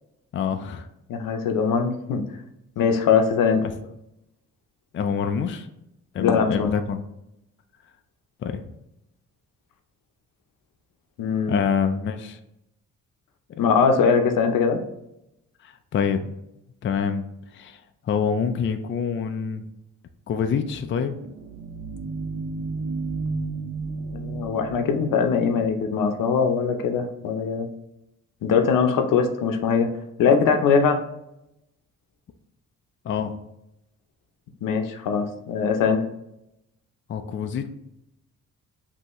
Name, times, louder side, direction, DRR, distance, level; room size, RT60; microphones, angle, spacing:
voice 1, 0.3-0.9 3.6-3.7 4.9-5.7 6.1-7.0 8.4-8.6 11.5-12.4 13.6-13.7 15.6-16.3 16.8-17.2 17.5-19.6 20.3-21.1 33.0-33.4 37.1-37.7, left 6 dB, 40° left, 7 dB, 0.4 m, -26 dB
voice 2, 1.1-2.3 2.8-3.6 6.2-6.8 11.2-11.6 13.6-14.8 24.1-27.7 28.4-29.9 30.2-31.0 34.6-36.0, left 6 dB, 85° left, 6 dB, 0.7 m, -21 dB
sound 1, 20.8-26.2, right 3 dB, 90° right, 0.7 m, -33 dB
5.4 x 2.8 x 3.0 m, 0.85 s
cardioid pair, 115°, 32 cm